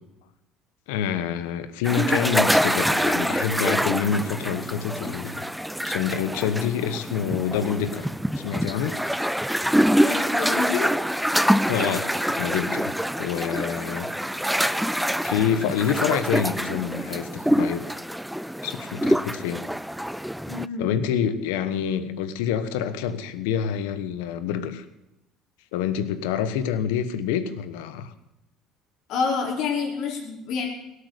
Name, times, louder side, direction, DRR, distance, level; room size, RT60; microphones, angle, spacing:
voice 1, 0.9-5.5 5.8-8.1 8.3-9.0 9.9-10.0 11.7-14.1 15.2-18.0 18.6-19.6 20.8-24.9 25.7-28.1, left 8 dB, 90° left, 12 dB, 1.3 m, -27 dB
sound 1, 1.8-20.7, equal, ahead, 0.5 m, -25 dB
voice 2, 10.0-11.0 20.5-20.9 29.1-30.7, left 5 dB, 65° left, -1 dB, 5.1 m, -28 dB
17.5 x 8.3 x 8.2 m, 0.91 s
supercardioid pair, 85°, 0 cm